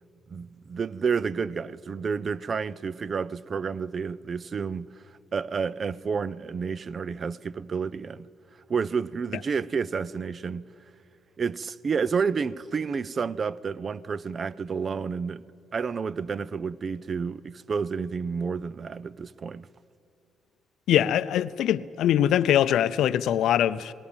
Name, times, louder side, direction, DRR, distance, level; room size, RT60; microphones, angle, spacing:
voice 1, 0.3-4.9 5.3-8.3 8.7-10.7 11.4-19.7, right 5 dB, 45° right, 0.5 m, -30 dB
voice 2, 20.9-23.9, left 11 dB, 80° left, 0.5 m, -22 dB
19.0 x 18.0 x 8.8 m
cardioid pair, 90°, 0 cm